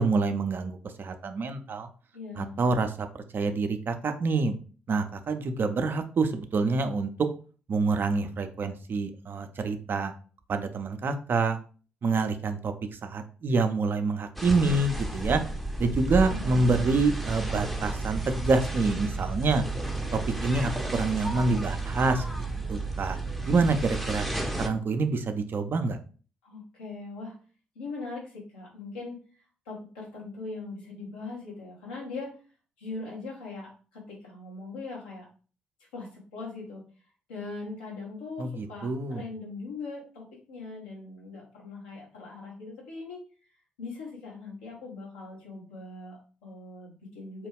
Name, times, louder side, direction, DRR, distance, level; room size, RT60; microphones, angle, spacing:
voice 1, 0.0-1.9 2.4-3.1 3.3-4.6 4.9-7.1 7.7-10.1 10.5-11.6 12.0-15.4 15.8-19.6 20.1-22.4 22.7-23.2 23.5-24.3 24.6-26.0 38.4-39.2, right 3 dB, 45° right, 8 dB, 0.4 m, -27 dB
voice 2, 2.1-2.6 16.3-16.9 26.4-27.3 27.7-29.2 29.6-32.4 32.8-35.3 35.9-36.8 37.3-43.2 43.8-47.5, left 3 dB, 80° left, -4 dB, 1.1 m, -40 dB
sound 1, 14.4-24.7, right 2 dB, ahead, 0.6 m, -32 dB
2.9 x 2.2 x 3.4 m, 0.38 s
figure-of-eight pair, 40°, 5 cm